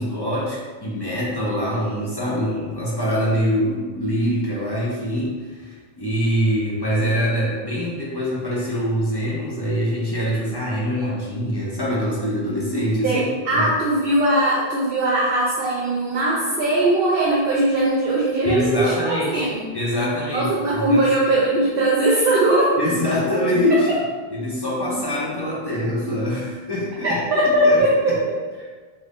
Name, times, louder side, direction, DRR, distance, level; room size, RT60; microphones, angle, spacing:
voice 1, 0.0-13.2 13.5-13.7 18.4-19.5 19.7-21.0 22.8-24.0 24.3-27.2 27.6-28.2, equal, 30° left, -7 dB, 0.5 m, -24 dB
voice 2, 13.0-19.7 20.3-22.8 23.7-23.8 27.0-28.4, right 1 dB, 65° right, -5 dB, 0.7 m, -20 dB
2.6 x 2.5 x 3.4 m, 1.4 s
omnidirectional pair, 1.1 m